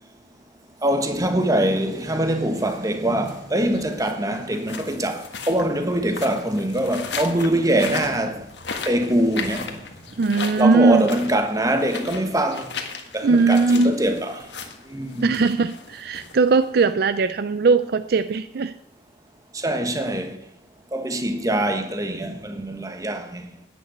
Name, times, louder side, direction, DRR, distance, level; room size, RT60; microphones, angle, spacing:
voice 1, 0.8-8.5 8.8-9.8 10.6-12.7 13.1-14.4 14.9-15.4 19.5-20.4 20.9-23.5, right 1 dB, 20° right, 1.2 m, -23 dB
sound 1, 1.3-16.9, left 5 dB, 65° left, 1.6 m, -37 dB
voice 2, 10.2-11.1 13.2-14.0 15.2-18.7, right 4 dB, 55° right, 0.4 m, -19 dB
10.5 x 9.8 x 6.7 m
head